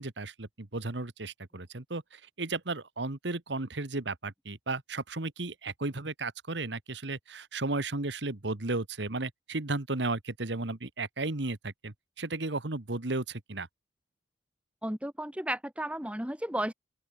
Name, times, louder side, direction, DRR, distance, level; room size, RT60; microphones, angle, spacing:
voice 1, 0.0-13.7, right 2 dB, 75° right, 1.6 m, -34 dB
voice 2, 14.8-16.7, right 1 dB, 5° right, 1.5 m, -33 dB
open air
head